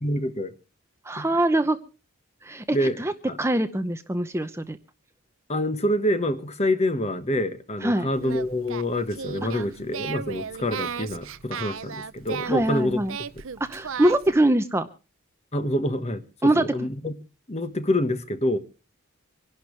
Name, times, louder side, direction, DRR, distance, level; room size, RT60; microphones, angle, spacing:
voice 1, 0.0-0.5 1.2-1.3 2.7-3.0 3.3-3.4 5.5-13.0 15.5-17.1 17.5-18.6, left 1 dB, 30° left, 1.3 m, -26 dB
voice 2, 1.0-1.8 2.4-3.1 3.4-4.8 7.8-8.1 9.5-9.6 12.4-13.2 13.6-14.9 16.4-16.7, right 1 dB, 10° right, 0.7 m, -23 dB
Singing, 8.1-14.4, right 6 dB, 65° right, 0.6 m, -36 dB
26.0 x 11.5 x 3.2 m
head